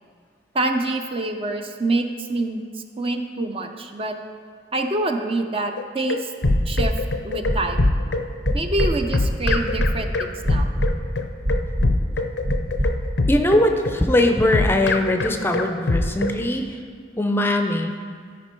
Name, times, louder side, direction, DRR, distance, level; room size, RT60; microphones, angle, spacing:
voice 1, 0.5-2.6 3.0-4.1 4.7-6.3 6.7-6.9 7.2-7.8 8.5-10.7, right 2 dB, 35° right, 5 dB, 0.5 m, -26 dB
sound 1, 5.8-16.4, left 2 dB, 85° left, 0.6 m, -24 dB
sound 2, 6.4-6.9 7.4-7.9 8.4-8.9 9.4-9.9 10.4-10.9 11.4-11.9 12.4-12.9 13.4-13.5, equal, 50° right, 1.2 m, -22 dB
voice 2, 13.3-16.8 17.2-18.0, left 1 dB, 15° left, 5 dB, 0.5 m, -20 dB
13.5 x 5.2 x 4.4 m, 2.1 s
head